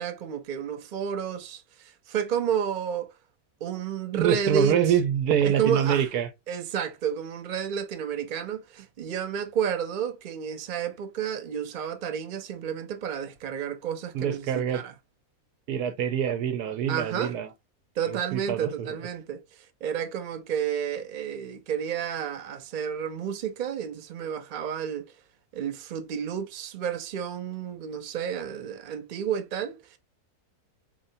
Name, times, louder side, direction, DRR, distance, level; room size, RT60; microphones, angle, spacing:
voice 1, 0.0-3.1 3.6-5.0 5.4-6.1 6.5-14.9 16.9-17.3 18.0-19.4 19.8-25.1 25.5-30.0, right 8 dB, 55° right, 0.5 m, -31 dB
voice 2, 4.1-6.3 14.1-14.8 15.7-17.5 18.1-18.9, right 9 dB, 80° right, 1.2 m, -25 dB
4.3 x 2.8 x 2.6 m
omnidirectional pair, 1.6 m